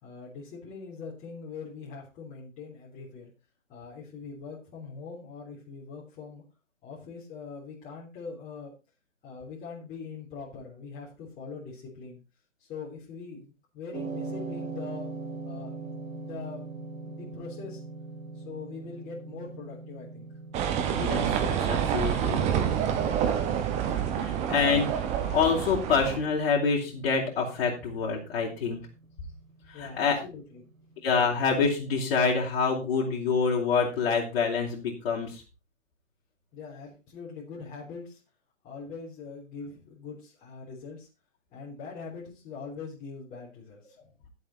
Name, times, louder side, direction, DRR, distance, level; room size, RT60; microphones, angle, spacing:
voice 1, 0.0-3.3 3.7-6.4 6.8-8.7 9.2-12.2 12.6-15.1 15.4-17.8 18.3-20.3 29.7-30.6 36.5-38.2 38.6-41.1 41.5-44.0, left 5 dB, 20° left, -7 dB, 3.5 m, -42 dB
sound 1, 13.9-32.2, right 3 dB, 90° right, 3.0 m, -43 dB
sound 2, 20.5-26.2, right 9 dB, 15° right, 1.1 m, -27 dB
voice 2, 20.9-22.4 24.2-25.0 25.3-28.9 29.7-30.2 31.0-35.4, left 5 dB, 45° left, -4 dB, 3.6 m, -26 dB
13.0 x 7.9 x 4.3 m, 0.30 s
hypercardioid pair, 145°, 40 cm